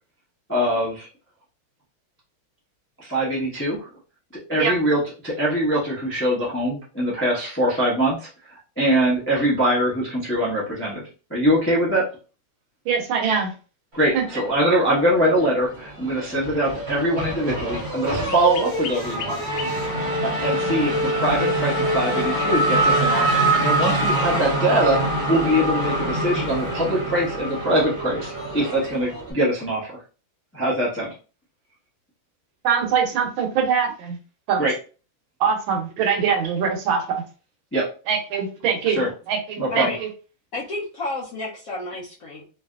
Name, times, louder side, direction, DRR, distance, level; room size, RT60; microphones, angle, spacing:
voice 1, 0.5-1.1 3.0-3.9 4.5-11.0 11.3-12.0 13.9-19.4 20.2-25.0 25.3-29.9 30.5-31.1 34.6-34.7 37.7-37.9 38.9-39.1 39.6-39.9, right 1 dB, 15° left, -7 dB, 0.4 m, -23 dB
voice 2, 12.9-13.5 14.1-14.2 32.6-34.2 34.5-34.7 35.4-37.0 38.1-40.1, right 6 dB, 75° right, 3 dB, 1.4 m, -23 dB
Race car auto racing / Accelerating revving vroom, 14.3-15.3 15.6-29.3, right 1 dB, 50° right, 0.5 m, -24 dB
sound 1, 17.8-20.2 20.9-21.0 23.3-23.9, left 7 dB, 90° left, 1.4 m, -38 dB
voice 3, 39.7-40.0 40.5-42.4, left 2 dB, 70° left, -5 dB, 0.8 m, -31 dB
3.2 x 2.7 x 2.3 m, 0.36 s
omnidirectional pair, 2.2 m